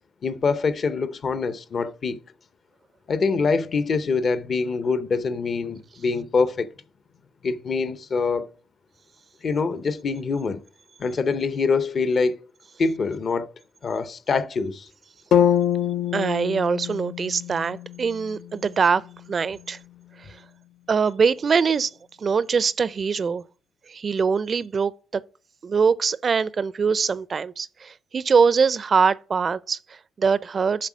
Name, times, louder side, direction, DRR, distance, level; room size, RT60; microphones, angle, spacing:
voice 1, 0.2-2.2 3.1-6.7 7.4-8.5 9.4-10.6 11.0-12.4 12.8-13.5 13.8-14.9, left 4 dB, 50° left, 0.7 m, -24 dB
sound 1, 15.3-19.4, left 9 dB, 75° left, 0.3 m, -25 dB
voice 2, 16.1-19.0 19.3-19.8 20.9-21.9 22.2-23.4 23.9-25.2 25.6-30.9, right 5 dB, 40° right, 0.4 m, -23 dB
7.5 x 3.7 x 6.1 m
cardioid pair, 90°, 0 cm